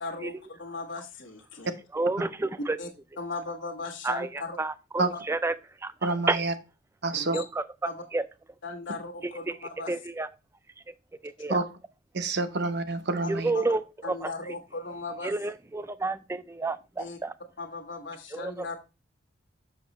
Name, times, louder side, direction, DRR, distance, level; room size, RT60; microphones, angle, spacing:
voice 1, 0.0-1.7 2.8-2.9 3.2-4.6 5.1-5.2 7.1-7.5 7.8-8.0 8.6-9.9 13.5-13.7 14.0-15.3 17.0-17.2 17.6-18.8, left 3 dB, 65° left, 1.4 m, -37 dB
voice 2, 1.9-2.8 4.0-4.3 4.6-5.5 5.8-5.9 6.3-6.4 7.3-7.6 8.1-8.2 9.5-9.6 9.9-10.3 11.2-11.6 13.3-13.8 14.2-14.3 15.2-17.3 18.3-18.6, right 2 dB, 15° right, 0.3 m, -29 dB
voice 3, 6.0-6.5 7.0-7.4 11.5-11.7 12.1-13.5, right 3 dB, 55° right, 0.7 m, -27 dB
6.6 x 6.2 x 3.0 m
head